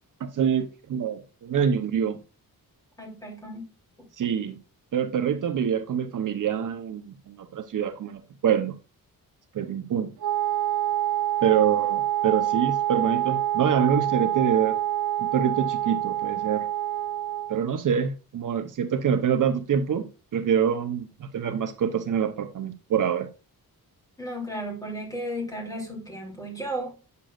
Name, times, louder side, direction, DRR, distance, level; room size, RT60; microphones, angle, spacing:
voice 1, 0.2-2.2 4.2-4.6 4.9-8.8 9.5-10.1 11.4-14.8 15.2-16.7 17.5-23.3, right 8 dB, 60° right, 0.8 m, -25 dB
voice 2, 3.0-3.7 24.2-26.9, equal, 10° left, 3.1 m, -34 dB
Wind instrument woodwind instrument, 10.2-17.6, right 12 dB, 90° right, 1.5 m, -26 dB
8.9 x 6.8 x 2.4 m
wide cardioid pair, 155°, 37 cm